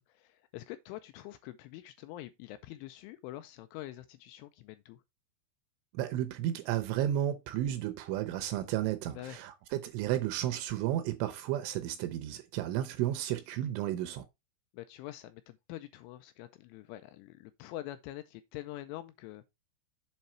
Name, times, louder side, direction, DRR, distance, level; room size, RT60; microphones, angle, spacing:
voice 1, 0.0-5.0 9.2-9.4 14.7-19.5, left 15 dB, 85° left, 2.8 m, -45 dB
voice 2, 5.9-14.2, right 12 dB, 80° right, 3.0 m, -33 dB
7.6 x 5.5 x 4.4 m
omnidirectional pair, 5.9 m